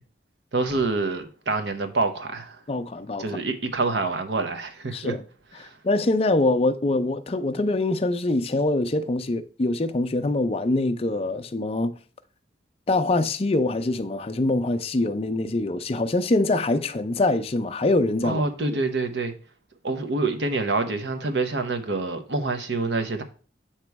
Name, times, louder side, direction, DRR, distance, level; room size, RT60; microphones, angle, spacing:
voice 1, 0.5-2.6 3.2-5.1 5.6-5.8 18.2-19.3 19.8-23.2, right 3 dB, 70° right, 0.8 m, -26 dB
voice 2, 2.7-3.4 4.9-5.2 5.6-11.9 12.9-18.4, left 2 dB, 30° left, 0.4 m, -24 dB
8.1 x 3.0 x 4.6 m
head